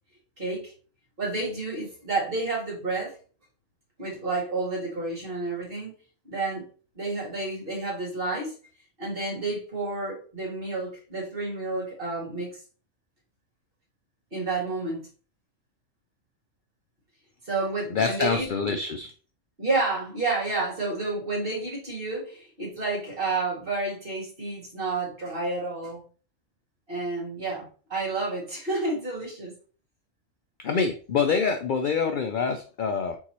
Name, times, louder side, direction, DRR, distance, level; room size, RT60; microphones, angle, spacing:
voice 1, 0.4-0.7 1.2-3.1 4.0-5.9 6.2-6.7 7.0-8.6 9.0-12.6 14.3-15.0 17.5-18.8 19.6-26.0 26.9-29.5, right 3 dB, 45° right, -4 dB, 2.3 m, -30 dB
voice 2, 17.9-19.1 30.6-33.2, left 5 dB, 65° left, 6 dB, 0.5 m, -26 dB
4.6 x 3.9 x 2.9 m, 0.38 s
omnidirectional pair, 1.3 m